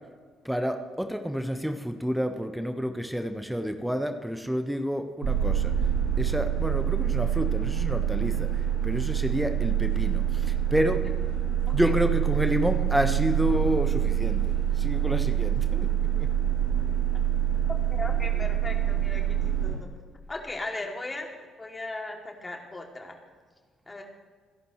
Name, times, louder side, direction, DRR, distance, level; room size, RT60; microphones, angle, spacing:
voice 1, 0.4-5.8 6.2-11.1 11.7-16.3, equal, 5° right, 7 dB, 1.3 m, -29 dB
sound 1, 5.2-19.7, right 10 dB, 85° right, 3.0 m, -26 dB
voice 2, 17.9-19.9 20.3-21.3 21.6-23.2 23.9-24.0, left 2 dB, 25° left, 1 dB, 2.7 m, -37 dB
27.5 x 11.0 x 3.2 m, 1.5 s
figure-of-eight pair, 45°, 0 cm